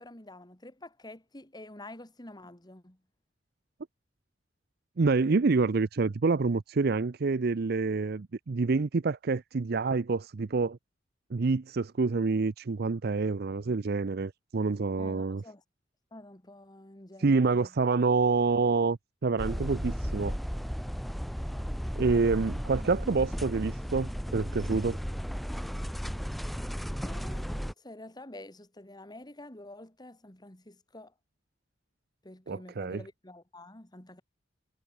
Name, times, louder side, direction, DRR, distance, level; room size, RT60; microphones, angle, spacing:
voice 1, 0.0-3.0 15.0-15.6 16.1-17.7 21.5-21.7 27.0-31.1 32.2-34.2, left 1 dB, 20° left, 2.6 m, -48 dB
voice 2, 5.0-10.8 11.3-15.4 17.2-20.4 22.0-25.0 32.5-33.0, right 4 dB, 60° right, 0.5 m, -27 dB
sound 1, 19.4-27.7, equal, ahead, 1.7 m, -34 dB
head